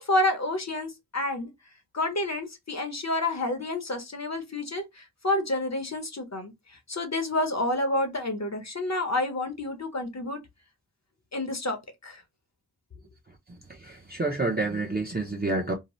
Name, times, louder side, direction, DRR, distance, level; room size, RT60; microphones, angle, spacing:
voice 1, 0.0-1.5 1.9-6.5 6.9-10.4 11.3-11.8 12.0-12.2, left 2 dB, 45° left, 0.7 m, -29 dB
voice 2, 13.7-15.7, right 2 dB, 25° right, 0.6 m, -28 dB
2.7 x 2.1 x 3.0 m
wide cardioid pair, 70°, 38 cm